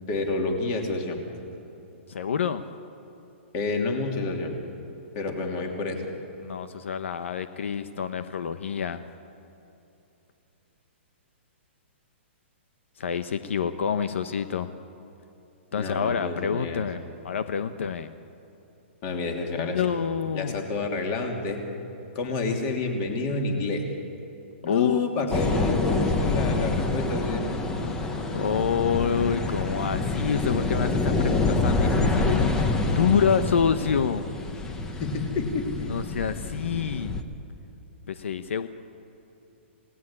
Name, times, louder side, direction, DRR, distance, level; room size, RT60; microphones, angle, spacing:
voice 1, 0.1-1.2 3.5-4.5 5.1-6.0 15.7-16.8 19.0-19.8 20.3-21.6 22.1-23.9 24.6-27.5 35.0-36.0, left 3 dB, 25° left, 3 dB, 2.9 m, -29 dB
voice 2, 2.1-2.6 6.4-9.1 13.0-14.7 15.7-18.1 19.5-20.6 24.6-25.0 28.3-34.3 35.9-37.2 38.1-38.7, left 7 dB, 75° left, 10 dB, 1.0 m, -27 dB
sound 1, 25.3-37.2, left 3 dB, 10° left, 1.0 m, -26 dB
28.0 x 18.0 x 9.7 m, 2.9 s
hypercardioid pair, 175°, 7 cm